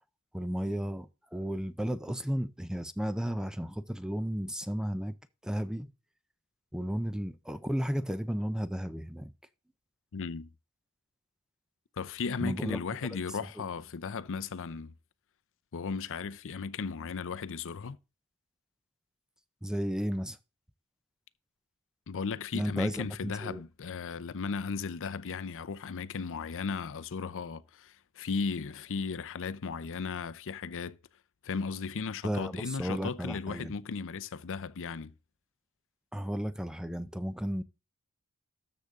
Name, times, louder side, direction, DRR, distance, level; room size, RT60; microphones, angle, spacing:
voice 1, 0.3-5.2 5.4-5.9 6.7-9.3 12.4-13.2 13.6-13.7 19.6-20.4 22.5-23.6 32.2-33.7 36.1-37.6, equal, 5° right, 0.4 m, -34 dB
voice 2, 10.1-10.5 12.0-14.9 15.7-18.0 22.1-31.0 31.4-35.1, left 5 dB, 60° left, 0.6 m, -36 dB
13.0 x 6.6 x 3.6 m
head